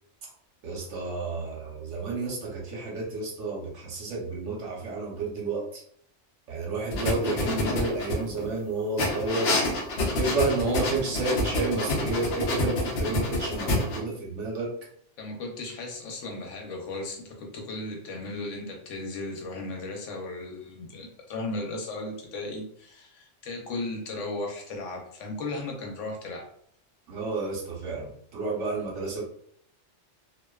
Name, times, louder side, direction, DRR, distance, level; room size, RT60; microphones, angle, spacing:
voice 1, 0.6-5.6 6.5-9.6 10.1-14.7 27.1-29.2, right 3 dB, 85° right, -2 dB, 1.1 m, -31 dB
sound 1, 6.9-8.5 9.0-14.0, left 2 dB, 65° left, 0.8 m, -28 dB
voice 2, 15.2-26.4, left 2 dB, 90° left, 1 dB, 1.0 m, -36 dB
2.5 x 2.2 x 2.2 m, 0.64 s
omnidirectional pair, 1.2 m